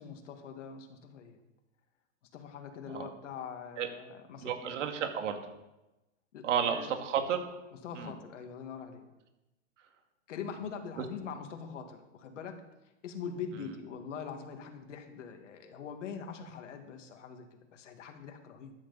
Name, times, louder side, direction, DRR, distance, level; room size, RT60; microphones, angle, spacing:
voice 1, 0.0-1.4 2.3-4.7 6.3-6.9 7.8-9.0 10.3-12.6 13.0-18.7, left 6 dB, 70° left, 5 dB, 2.2 m, -43 dB
voice 2, 4.4-5.4 6.4-7.4 7.9-8.1 11.0-11.1, right 8 dB, 70° right, 5 dB, 2.4 m, -32 dB
13.5 x 11.5 x 4.2 m, 0.99 s
supercardioid pair, 160°, 37 cm